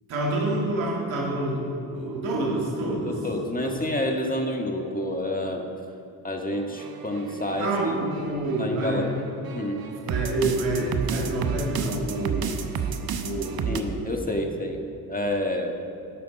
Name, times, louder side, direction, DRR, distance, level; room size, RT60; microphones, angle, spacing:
voice 1, 0.1-1.7 1.9-3.3 3.6-3.8 7.6-9.1 9.9-12.5 13.2-14.4, right 2 dB, 85° right, -2 dB, 1.9 m, -28 dB
voice 2, 3.1-5.6 6.2-7.7 8.6-9.2 9.5-9.8 13.7-14.8 15.1-15.8, left 1 dB, 20° left, 2 dB, 1.6 m, -28 dB
sound 1, 6.5-13.8, right 7 dB, 50° right, 0.9 m, -32 dB
14.0 x 5.8 x 4.9 m, 2.6 s
hypercardioid pair, 40°, 45 cm